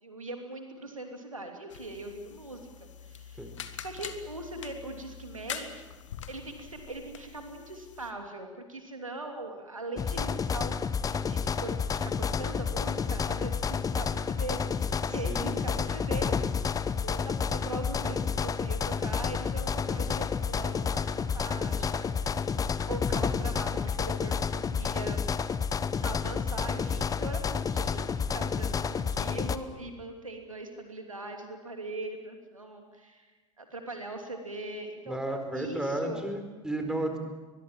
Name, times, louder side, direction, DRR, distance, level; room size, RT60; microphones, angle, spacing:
voice 1, 0.0-2.7 3.0-3.5 3.8-5.8 6.3-16.4 17.0-25.2 26.0-33.3 33.6-36.3, right 2 dB, 85° right, 4 dB, 2.9 m, -41 dB
sound 1, 1.7-8.1, left 9 dB, 70° left, 1.8 m, -44 dB
sound 2, 10.0-29.6, left 6 dB, 20° left, 1.0 m, -30 dB
voice 2, 15.1-15.6 35.1-37.2, right 1 dB, 5° right, 5 dB, 4.4 m, -33 dB
23.5 x 21.0 x 7.5 m, 1.3 s
figure-of-eight pair, 75°, 17 cm